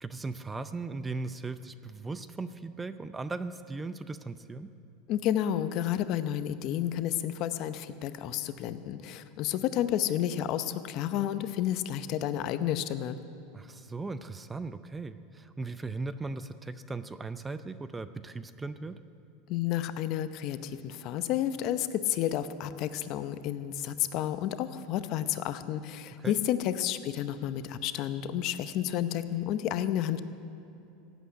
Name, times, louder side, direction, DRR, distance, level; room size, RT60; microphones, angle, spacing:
voice 1, 0.0-4.7 13.5-19.0 26.2-26.4, right 3 dB, 15° right, 12 dB, 0.5 m, -38 dB
voice 2, 5.1-13.2 19.5-30.2, left 11 dB, 50° left, 12 dB, 0.7 m, -31 dB
16.5 x 8.2 x 9.5 m, 2.8 s
supercardioid pair, 130°, 0 cm